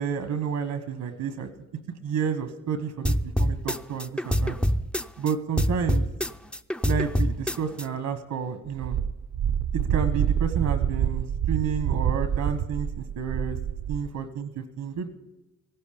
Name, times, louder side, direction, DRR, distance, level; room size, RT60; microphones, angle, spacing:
voice 1, 0.0-1.5 2.0-4.6 5.2-6.1 6.8-9.0 9.7-13.5 13.9-15.1, right 7 dB, 80° right, 9 dB, 1.4 m, -30 dB
sound 1, 3.0-5.3 5.6-7.8, equal, 5° left, 0.4 m, -25 dB
Wind, 8.7-14.1, right 8 dB, 60° right, 0.6 m, -27 dB
16.0 x 10.5 x 5.3 m, 1.0 s
cardioid pair, 90°, 30 cm